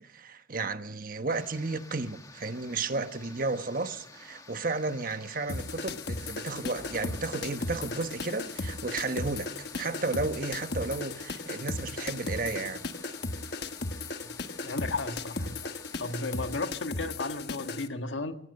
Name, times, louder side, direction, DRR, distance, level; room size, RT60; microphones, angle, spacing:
voice 1, 0.0-12.8, right 3 dB, 45° right, 1.2 m, -33 dB
sound 1, 1.3-16.7, left 3 dB, 20° left, 1.8 m, -51 dB
sound 2, 5.5-17.9, left 3 dB, 60° left, 1.3 m, -36 dB
voice 2, 14.6-15.7 16.0-18.4, left 3 dB, 80° left, 1.6 m, -34 dB
25.0 x 18.0 x 6.6 m
head